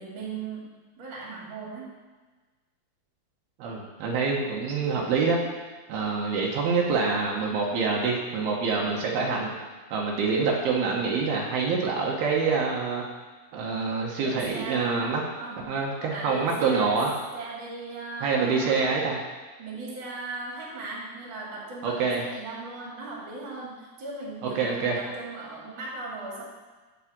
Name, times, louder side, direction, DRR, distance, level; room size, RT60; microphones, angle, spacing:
voice 1, 0.0-1.9 14.2-15.1 15.4-15.8 16.1-17.0 17.3-18.9 19.6-26.4, right 3 dB, 35° right, -4 dB, 2.4 m, -38 dB
voice 2, 3.6-5.4 5.9-9.5 9.9-13.1 13.5-15.2 15.7-17.1 18.2-19.2 21.8-22.2 24.4-25.0, right 4 dB, 85° right, -1 dB, 3.0 m, -26 dB
8.6 x 4.8 x 7.4 m, 1.3 s
omnidirectional pair, 4.4 m